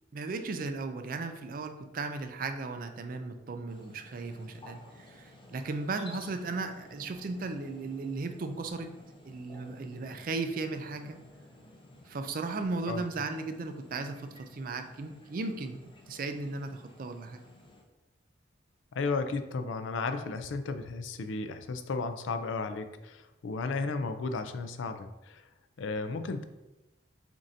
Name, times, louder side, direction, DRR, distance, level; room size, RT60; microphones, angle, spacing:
voice 1, 0.1-8.9 9.2-11.2 12.1-17.4, right 3 dB, 45° right, 7 dB, 0.4 m, -36 dB
sound 1, 3.7-17.8, left 1 dB, 25° left, 0.6 m, -54 dB
voice 2, 18.9-25.5 25.8-26.4, left 3 dB, 85° left, 8 dB, 0.4 m, -34 dB
7.3 x 2.6 x 2.6 m, 1.0 s
head